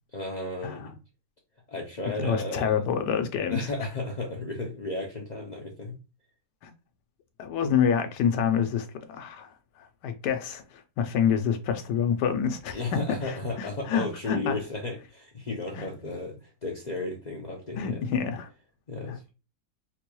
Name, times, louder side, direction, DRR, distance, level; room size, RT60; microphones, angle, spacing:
voice 1, 0.1-0.9 1.7-2.7 3.5-5.9 12.7-18.0 18.9-19.3, left 2 dB, 70° left, 0.4 m, -34 dB
voice 2, 2.2-3.7 6.6-6.7 7.4-9.5 9.8-12.8 13.2-14.6 15.7-15.8 17.8-18.5, left 7 dB, 85° left, 1.3 m, -27 dB
4.3 x 2.2 x 2.9 m
omnidirectional pair, 1.7 m